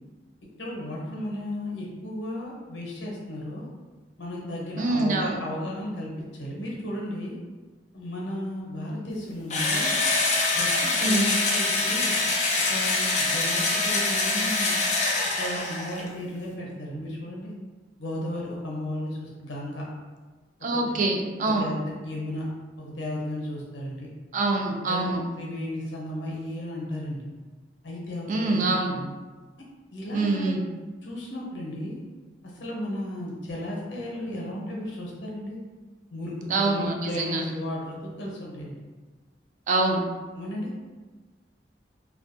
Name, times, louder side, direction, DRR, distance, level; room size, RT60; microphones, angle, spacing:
voice 1, 0.6-3.7 4.2-7.4 7.9-10.0 10.5-12.2 12.7-14.8 15.4-17.5 18.0-19.8 20.7-20.9 21.4-22.5 22.8-24.1 24.6-27.3 27.8-28.6 28.9-29.1 29.9-30.6 31.0-32.0 32.4-35.6 36.1-38.8 40.3-40.8, left 1 dB, 90° left, -3 dB, 0.7 m, -34 dB
voice 2, 4.8-5.3 11.0-11.3 20.6-21.7 24.3-25.2 28.3-28.9 30.1-30.6 36.5-37.4 39.7-40.0, right 2 dB, 45° right, 2 dB, 0.3 m, -25 dB
Engine / Drill, 9.5-16.1, left 3 dB, 40° left, 0.4 m, -25 dB
2.3 x 2.1 x 2.5 m, 1.3 s
head